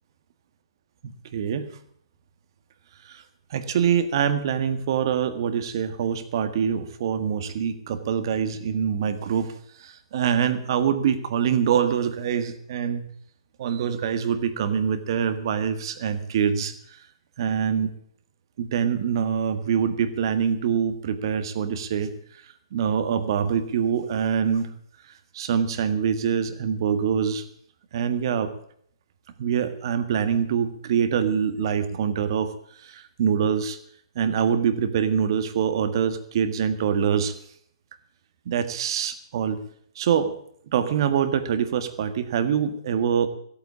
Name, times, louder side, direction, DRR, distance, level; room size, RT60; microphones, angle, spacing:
voice 1, 1.0-1.8 3.1-3.2 3.5-9.5 9.8-13.1 13.6-16.7 17.4-17.9 18.6-22.1 22.7-24.7 25.3-27.4 27.9-28.5 29.4-32.5 32.8-33.8 34.1-37.3 38.4-39.6 39.9-40.3 40.7-43.3, right 7 dB, 55° right, 10 dB, 1.7 m, -24 dB
15.0 x 8.7 x 8.6 m, 0.64 s
hypercardioid pair, 130°, 3 cm